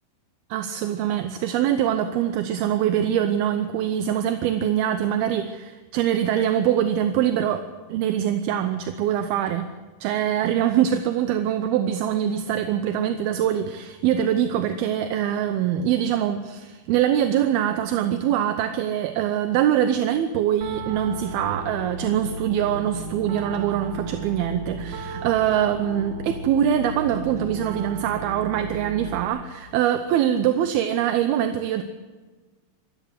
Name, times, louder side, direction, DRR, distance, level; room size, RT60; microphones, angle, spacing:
voice 1, 0.5-9.7 10.0-31.8, right 10 dB, 75° right, 8 dB, 2.6 m, -23 dB
Piano, 20.6-29.2, right 4 dB, 55° right, 3.2 m, -35 dB
26.0 x 13.5 x 7.9 m, 1.3 s
omnidirectional pair, 4.8 m